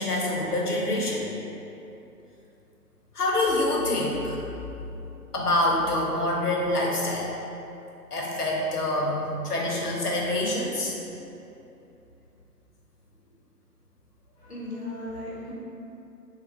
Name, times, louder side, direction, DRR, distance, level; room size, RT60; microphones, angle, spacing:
voice 1, 0.0-1.3 3.1-4.4 5.3-7.3 8.1-11.0, left 1 dB, 65° left, -3 dB, 0.9 m, -26 dB
voice 2, 14.4-15.5, left 1 dB, 40° left, -8 dB, 0.8 m, -36 dB
3.4 x 2.3 x 4.1 m, 2.9 s
figure-of-eight pair, 170°, 49 cm